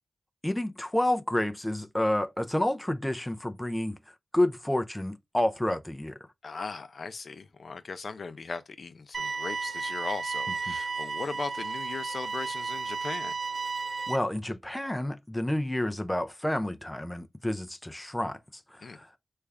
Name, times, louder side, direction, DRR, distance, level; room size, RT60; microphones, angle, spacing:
voice 1, 0.4-4.0 4.3-6.2 10.7-10.8 14.1-18.4 18.7-19.1, left 1 dB, 10° left, 0.4 m, -29 dB
voice 2, 6.4-13.3 18.8-19.0, left 4 dB, 60° left, 0.5 m, -38 dB
sound 1, 9.1-14.2, right 4 dB, 60° right, 0.5 m, -33 dB
3.3 x 2.3 x 3.4 m
wide cardioid pair, 75°, 0 cm